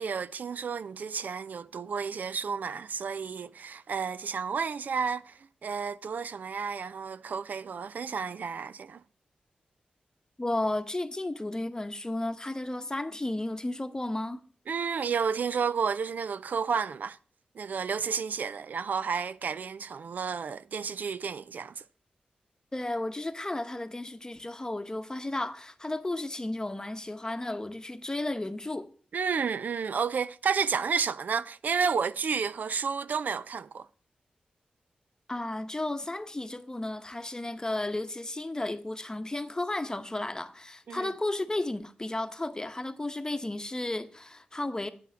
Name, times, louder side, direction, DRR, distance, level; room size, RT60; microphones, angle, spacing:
voice 1, 0.0-9.0 14.7-17.2 17.6-21.7 29.1-33.9 40.9-41.1, right 6 dB, 70° right, 0.3 m, -31 dB
voice 2, 10.4-14.4 22.7-28.9 35.3-44.9, left 2 dB, 25° left, 0.9 m, -33 dB
8.9 x 5.6 x 6.2 m
cardioid pair, 50°, 3 cm